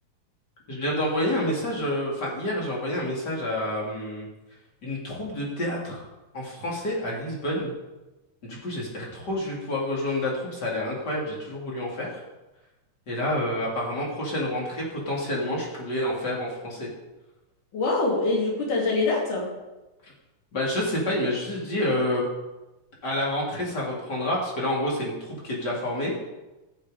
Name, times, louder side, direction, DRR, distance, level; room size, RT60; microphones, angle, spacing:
voice 1, 0.7-4.3 4.8-6.0 6.3-7.7 8.4-12.2 13.1-16.9 20.0-20.1 20.5-22.3 23.0-26.3, left 1 dB, 30° left, -3 dB, 3.1 m, -28 dB
voice 2, 17.7-19.5, left 3 dB, 70° left, -3 dB, 4.5 m, -24 dB
16.0 x 6.6 x 5.0 m, 1.1 s
omnidirectional pair, 3.7 m